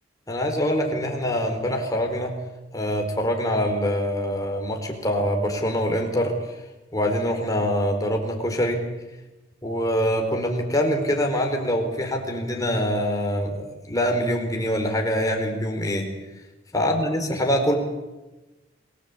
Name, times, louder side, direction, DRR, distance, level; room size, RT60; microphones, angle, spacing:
voice 1, 0.3-2.3 2.7-6.3 6.9-8.8 9.6-16.1 16.7-17.7, equal, 15° left, 2 dB, 4.7 m, -24 dB
28.5 x 19.0 x 8.8 m, 1.1 s
head